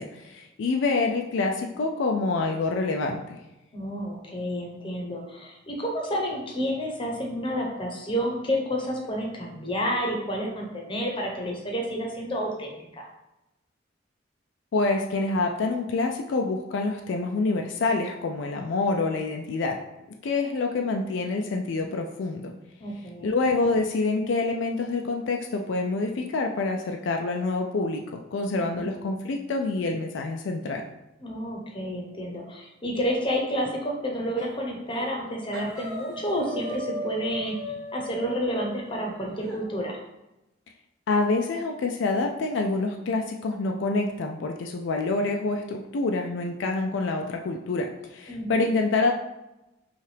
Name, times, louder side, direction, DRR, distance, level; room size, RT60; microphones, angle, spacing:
voice 1, 0.0-3.4 14.7-19.8 20.2-22.5 23.2-30.8 41.1-49.1, left 3 dB, 70° left, 3 dB, 0.4 m, -27 dB
voice 2, 3.7-13.1 22.8-23.3 28.5-28.8 31.2-40.0 48.3-48.6, equal, 25° left, 0 dB, 0.8 m, -30 dB
sound 1, 34.4-34.6 34.9-35.2 35.5-39.6, equal, 5° right, 1.2 m, -38 dB
5.4 x 2.4 x 3.3 m, 0.95 s
head